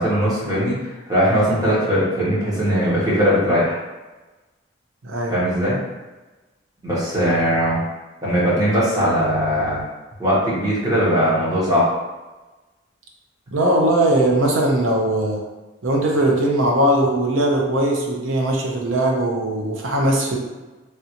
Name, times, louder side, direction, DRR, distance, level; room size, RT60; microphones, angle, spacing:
voice 1, 0.0-3.8 5.3-5.8 6.8-7.8 8.2-9.8 10.2-11.8, equal, 20° right, -8 dB, 1.1 m, -19 dB
voice 2, 5.0-5.4 13.5-15.4 15.8-20.4, right 1 dB, 80° right, -1 dB, 0.7 m, -19 dB
3.2 x 2.5 x 2.9 m, 1.2 s
head